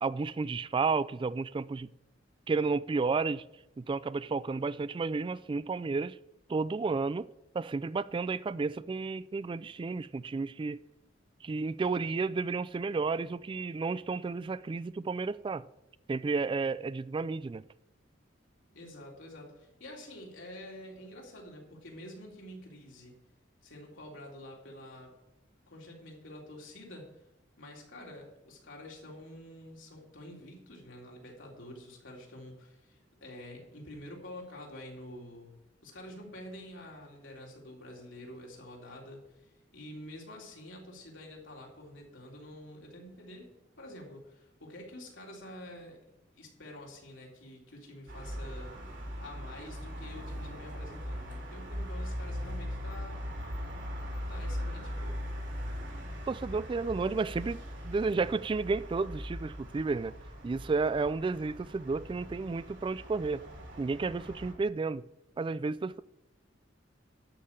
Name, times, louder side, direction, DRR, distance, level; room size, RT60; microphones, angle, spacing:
voice 1, 0.0-1.9 2.5-3.4 3.8-6.2 6.5-7.3 7.5-10.8 11.4-15.7 16.1-17.6 56.3-60.1 60.4-63.4 63.8-65.1 65.4-66.0, right 4 dB, 25° right, 0.3 m, -32 dB
voice 2, 18.7-23.2 23.6-25.1 25.7-27.1 27.6-46.0 46.4-48.8 49.2-53.2 54.3-55.2, left 1 dB, 80° left, 3.5 m, -48 dB
sound 1, 48.1-64.5, equal, 70° right, 3.8 m, -40 dB
13.0 x 5.6 x 8.7 m
head